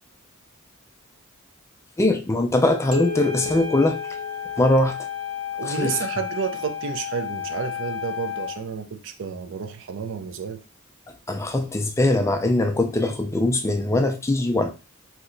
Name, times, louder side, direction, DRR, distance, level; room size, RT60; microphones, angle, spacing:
voice 1, 2.0-4.0 4.6-5.0 5.6-5.9 11.3-14.7, left 2 dB, 15° left, 0.3 m, -21 dB
Wind instrument woodwind instrument, 2.6-8.6, left 9 dB, 75° left, 0.7 m, -33 dB
sound 1, 2.9-5.3, left 5 dB, 85° right, 0.9 m, -33 dB
voice 2, 5.6-10.6, right 6 dB, 60° right, 0.4 m, -31 dB
2.8 x 2.2 x 3.8 m
head